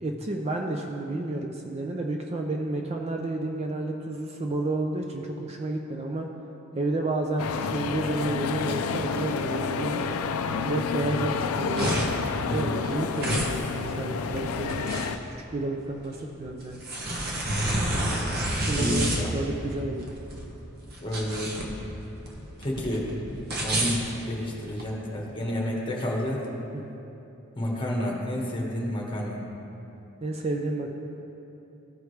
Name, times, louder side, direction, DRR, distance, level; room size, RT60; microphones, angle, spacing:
voice 1, 0.0-6.3 6.8-10.1 10.6-12.0 12.4-14.8 15.5-16.8 18.5-19.1 19.3-20.1 23.8-23.9 26.7-26.9 30.2-30.9, right 2 dB, 30° right, 2 dB, 0.4 m, -31 dB
sound 1, 7.4-15.2, left 5 dB, 85° left, 0.4 m, -30 dB
sound 2, 11.5-24.9, right 1 dB, 45° right, 1.1 m, -30 dB
voice 2, 12.4-12.8 18.8-19.3 21.0-21.6 22.6-23.1 23.6-26.5 27.6-29.4, left 1 dB, 25° left, -2 dB, 1.2 m, -30 dB
14.5 x 4.9 x 3.2 m, 2.9 s
head